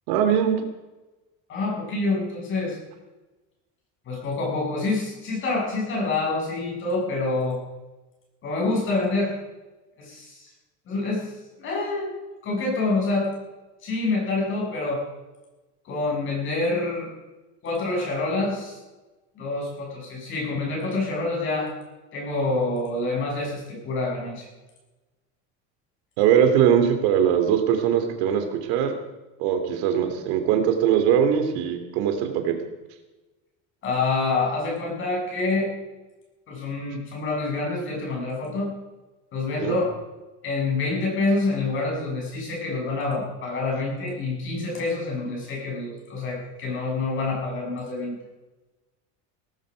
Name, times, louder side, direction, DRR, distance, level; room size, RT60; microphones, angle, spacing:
voice 1, 0.1-0.6 26.2-28.9 29.4-32.5 39.6-39.8, right 8 dB, 75° right, 6 dB, 3.0 m, -21 dB
voice 2, 1.5-2.8 4.1-7.6 8.4-9.3 10.0-10.4 10.9-11.3 11.6-12.1 12.4-13.3 13.8-15.0 15.9-17.1 17.6-18.8 19.4-21.7 22.1-24.5 33.8-35.7 36.5-38.7 39.3-39.9 40.4-48.1, left 3 dB, 35° left, -1 dB, 7.5 m, -27 dB
17.5 x 15.5 x 5.2 m, 1.1 s
cardioid pair, 165°, 33 cm